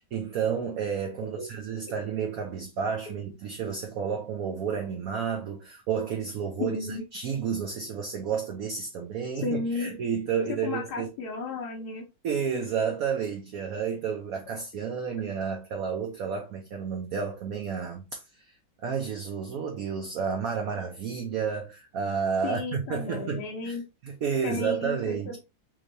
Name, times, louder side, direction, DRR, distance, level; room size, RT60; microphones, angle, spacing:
voice 1, 0.1-6.8 7.1-11.1 12.2-23.8 24.0-25.4, right 6 dB, 70° right, 0.8 m, -31 dB
voice 2, 6.6-7.0 9.4-9.9 10.6-12.0 22.4-23.8 24.4-25.4, left 4 dB, 65° left, 1.1 m, -33 dB
3.6 x 3.2 x 2.6 m
omnidirectional pair, 2.1 m